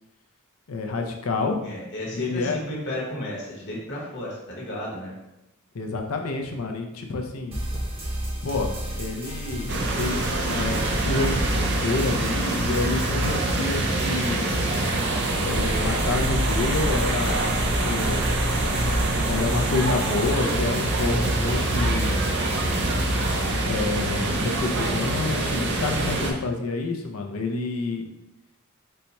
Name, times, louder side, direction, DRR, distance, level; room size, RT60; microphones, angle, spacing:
voice 1, 0.7-1.6 2.1-2.6 5.7-7.6 8.4-14.4 15.4-17.5 17.8-18.2 19.2-22.2 23.6-28.1, left 3 dB, 80° left, 3 dB, 0.6 m, -28 dB
voice 2, 1.6-5.1, equal, 55° left, -4 dB, 1.2 m, -33 dB
sound 1, 7.5-23.5, equal, 25° right, 0.9 m, -32 dB
sound 2, 9.7-26.3, right 2 dB, 55° right, 0.6 m, -25 dB
4.4 x 2.2 x 4.0 m, 0.90 s
head